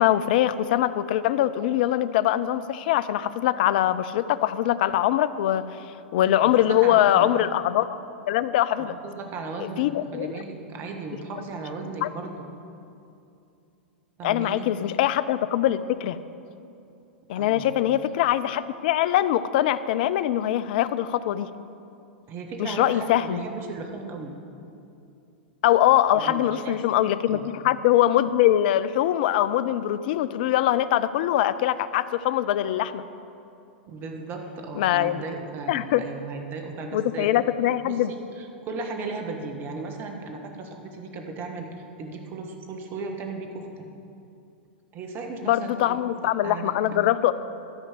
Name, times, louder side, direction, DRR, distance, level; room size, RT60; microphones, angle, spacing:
voice 1, 0.0-5.6 6.1-8.0 8.3-8.9 9.6-10.3 12.0-12.1 14.2-16.2 17.3-21.5 22.6-23.4 25.6-33.0 34.8-35.2 35.7-36.0 36.9-38.1 45.4-47.3, left 12 dB, 55° left, 15 dB, 0.4 m, -22 dB
voice 2, 6.4-7.3 8.8-9.9 10.1-12.4 14.2-14.7 17.4-17.7 22.3-24.4 26.1-26.8 27.3-27.5 33.9-37.4 37.8-43.9 44.9-46.8, right 3 dB, 35° right, 3 dB, 1.4 m, -36 dB
12.5 x 5.2 x 7.5 m, 2.6 s
hypercardioid pair, 100°, 6 cm